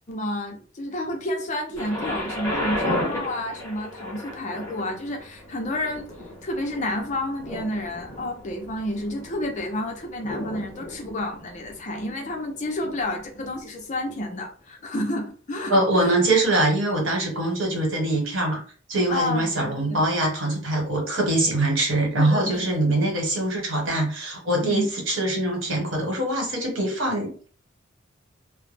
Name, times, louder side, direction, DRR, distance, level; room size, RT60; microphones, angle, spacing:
voice 1, 0.1-6.1 6.4-16.4 19.1-20.0 22.2-22.7 24.6-24.9, left 1 dB, 40° left, 0.6 m, -30 dB
Thunder, 1.8-13.6 14.4-14.5, left 1 dB, 15° left, 1.0 m, -34 dB
voice 2, 15.7-18.6 18.9-27.5, right 1 dB, 90° right, 1.2 m, -23 dB
2.2 x 2.1 x 3.2 m
head